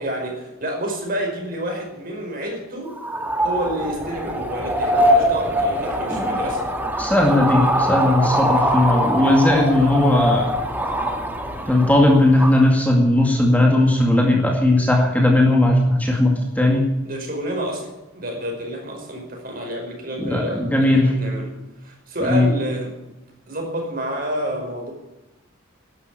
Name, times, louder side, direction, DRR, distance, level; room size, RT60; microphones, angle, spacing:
voice 1, 0.0-2.9 3.4-6.6 17.0-21.5 21.8-22.9 23.5-24.9, equal, 45° right, 1 dB, 5.3 m, -29 dB
sound 1, 2.9-12.6, equal, 10° right, 1.7 m, -22 dB
voice 2, 7.0-10.5 11.7-16.8 20.2-21.1 22.2-22.5, left 1 dB, 5° left, 0 dB, 2.1 m, -17 dB
12.5 x 11.0 x 8.3 m, 1.0 s
head